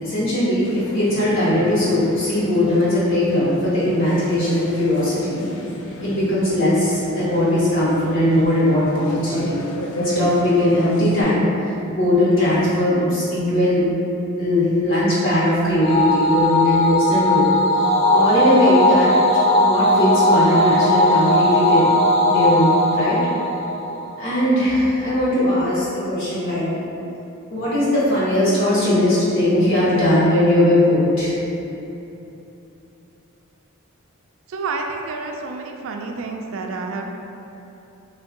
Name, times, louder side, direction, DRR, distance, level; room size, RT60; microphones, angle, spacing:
voice 1, 0.0-5.4 6.0-9.6 9.9-13.8 14.4-17.8 18.1-19.1 19.6-21.9 22.2-23.2 24.2-26.7 27.5-31.3, left 1 dB, 65° left, -9 dB, 0.8 m, -19 dB
sound 1, 0.6-11.2, left 1 dB, 85° left, 0.4 m, -33 dB
sound 2, 15.8-24.4, left 1 dB, 30° left, 0.5 m, -18 dB
voice 2, 34.5-37.0, right 3 dB, 65° right, 2 dB, 0.3 m, -29 dB
3.5 x 2.2 x 3.6 m, 2.9 s
head